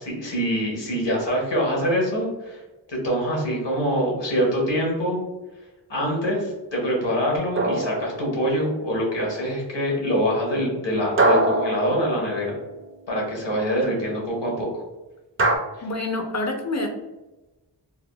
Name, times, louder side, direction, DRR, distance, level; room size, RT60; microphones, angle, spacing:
voice 1, 0.0-2.6 2.9-5.2 5.9-12.6 13.1-14.7, equal, 70° left, -2 dB, 1.1 m, -24 dB
sound 1, 7.6-8.8 11.2-12.8 15.4-15.6, right 2 dB, 30° right, 0.4 m, -23 dB
voice 2, 15.8-16.9, left 2 dB, 40° left, 2 dB, 0.5 m, -27 dB
3.4 x 2.1 x 2.2 m, 1.1 s
wide cardioid pair, 60°, 45 cm